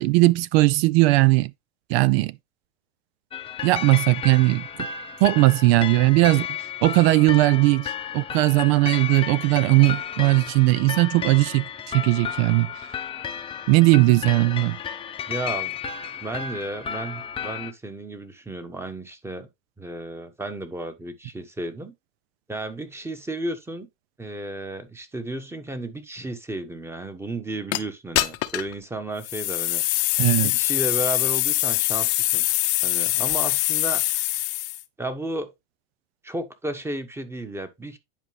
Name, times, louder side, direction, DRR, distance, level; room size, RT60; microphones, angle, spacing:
voice 1, 0.0-1.5 1.9-2.3 3.6-4.6 5.2-6.5 6.8-11.7 11.9-12.7 13.7-14.8 30.2-30.5, right 20 dB, 60° right, 0.6 m, -18 dB
sound 1, 3.3-17.7, left 8 dB, 15° left, 0.8 m, -33 dB
voice 2, 15.3-15.7 16.2-19.5 19.8-21.9 22.5-23.9 24.2-29.8 30.4-32.5 32.8-34.0 35.0-35.5 36.2-38.0, right 1 dB, 5° right, 1.2 m, -33 dB
sound 2, 27.7-27.8 28.2-28.7 29.2-34.8, left 18 dB, 45° left, 0.8 m, -23 dB
10.5 x 4.8 x 3.3 m
supercardioid pair, 130°, 36 cm